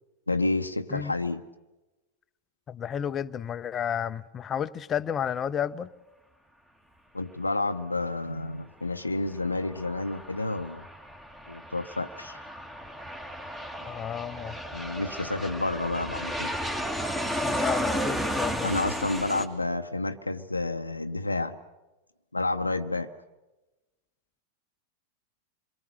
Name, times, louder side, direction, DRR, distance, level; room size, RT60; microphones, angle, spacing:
voice 1, 0.3-1.4 7.1-10.8 11.5-12.4 14.7-16.5 18.6-21.6 22.3-23.1, left 2 dB, 85° left, 0.7 m, -30 dB
voice 2, 2.7-5.9 13.8-14.6 17.4-18.7, left 8 dB, 25° left, 0.7 m, -31 dB
Aircraft, 9.2-19.5, equal, 10° right, 2.1 m, -33 dB
27.0 x 22.5 x 6.5 m
figure-of-eight pair, 90°, 0 cm